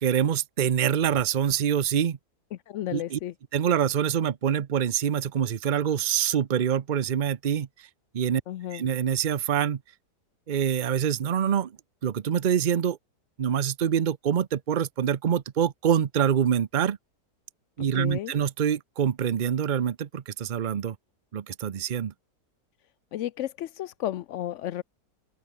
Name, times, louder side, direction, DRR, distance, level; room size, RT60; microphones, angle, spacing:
voice 1, 0.0-2.2 2.9-3.2 3.5-7.7 8.1-8.4 8.7-9.8 10.5-11.7 12.0-13.0 13.4-17.0 17.8-21.0 21.3-22.1, right 8 dB, 55° right, 0.5 m, -25 dB
voice 2, 2.5-3.3 8.5-8.9 17.9-18.3 23.1-24.8, left 12 dB, 70° left, 0.7 m, -33 dB
open air
omnidirectional pair, 1.8 m